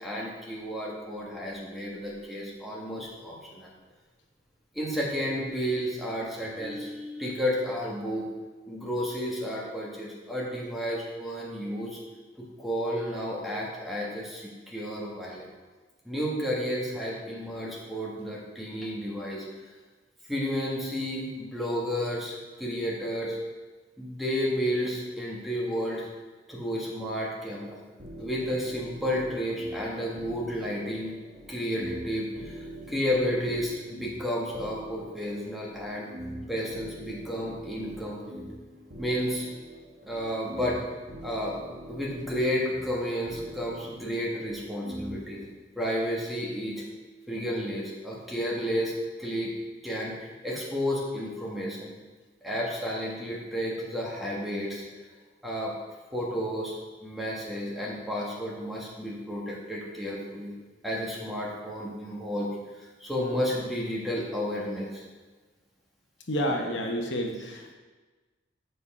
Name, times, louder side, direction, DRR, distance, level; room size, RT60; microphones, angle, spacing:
voice 1, 0.0-3.7 4.7-8.3 8.7-12.0 12.4-15.5 16.0-19.5 20.3-23.4 24.0-26.1 26.5-27.8 28.2-31.1 31.5-36.1 36.5-38.4 39.0-39.5 40.0-40.8 41.2-41.6 41.9-45.4 45.7-46.8 47.3-48.9 49.2-49.5 49.8-51.9 52.4-54.8 55.4-55.7 56.1-60.5 60.8-62.5 62.7-65.0, equal, ahead, -4 dB, 1.3 m, -32 dB
sound 1, 28.0-45.5, right 1 dB, 50° right, 1.2 m, -44 dB
voice 2, 66.3-67.7, equal, 70° left, 2 dB, 1.0 m, -29 dB
7.9 x 5.5 x 4.8 m, 1.3 s
head